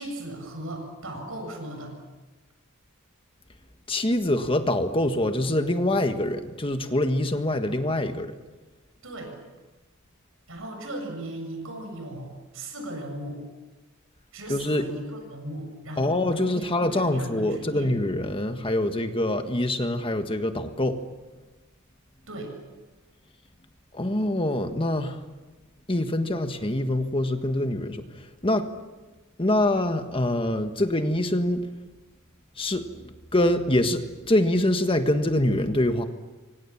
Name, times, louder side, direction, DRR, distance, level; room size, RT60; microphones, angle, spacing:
voice 1, 0.0-1.9 9.0-9.3 10.5-13.4 14.3-17.9 22.3-22.5, right 1 dB, 75° right, 4 dB, 7.4 m, -37 dB
voice 2, 3.9-8.3 14.5-14.8 16.0-21.0 23.9-25.2 25.9-28.0 28.4-28.7 29.4-31.7 32.6-32.9 33.3-36.0, left 1 dB, 25° left, 7 dB, 1.6 m, -24 dB
28.0 x 25.0 x 7.3 m, 1.2 s
head